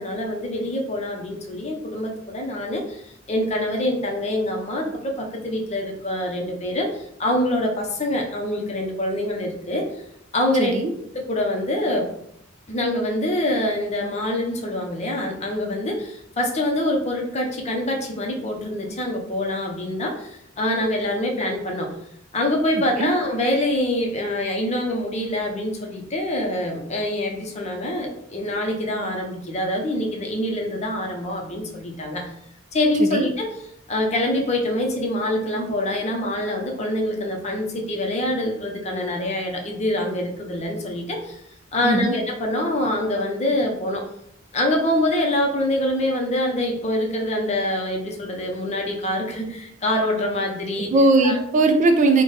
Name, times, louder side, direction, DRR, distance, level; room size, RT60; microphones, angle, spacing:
voice 1, 0.0-9.9 10.3-10.7 11.1-12.1 12.7-21.9 22.3-32.3 32.7-33.5 33.9-41.4 41.7-44.0 44.5-50.9 51.2-51.4, left 1 dB, 35° left, 1 dB, 0.6 m, -25 dB
voice 2, 10.6-10.9 23.0-23.1 33.0-33.3 41.8-42.1 50.9-52.2, right 2 dB, 35° right, 6 dB, 0.3 m, -18 dB
3.9 x 2.1 x 3.2 m, 0.73 s
head